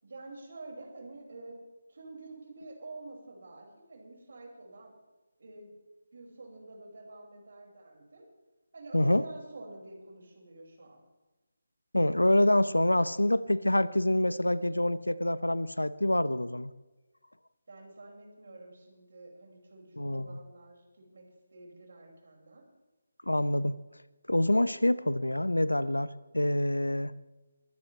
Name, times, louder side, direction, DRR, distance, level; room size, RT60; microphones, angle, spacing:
voice 1, 0.0-1.6 1.9-4.9 5.4-5.7 6.1-8.3 8.7-11.0 17.7-21.2 21.5-22.6, right 2 dB, 55° right, 0 dB, 5.5 m, -48 dB
voice 2, 8.9-9.2 11.9-16.7 20.0-20.4 23.3-23.7 24.3-27.1, left 1 dB, 90° left, 17 dB, 0.8 m, -26 dB
22.5 x 15.5 x 3.3 m, 1.1 s
figure-of-eight pair, 155°, 0 cm